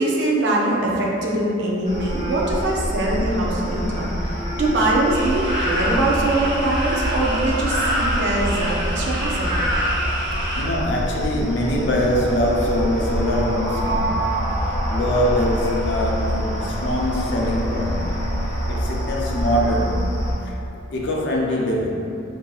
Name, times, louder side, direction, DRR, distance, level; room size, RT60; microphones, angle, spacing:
voice 1, 0.0-9.6, right 2 dB, 55° right, -4 dB, 0.4 m, -22 dB
sound 1, 1.8-20.3, equal, 35° left, 0.9 m, -26 dB
sound 2, 5.1-10.6, equal, 40° right, 1.3 m, -26 dB
voice 2, 10.5-18.3 18.7-20.2 20.4-20.5 20.9-21.9, equal, 60° left, -2 dB, 0.4 m, -23 dB
3.8 x 2.7 x 2.3 m, 2.7 s
head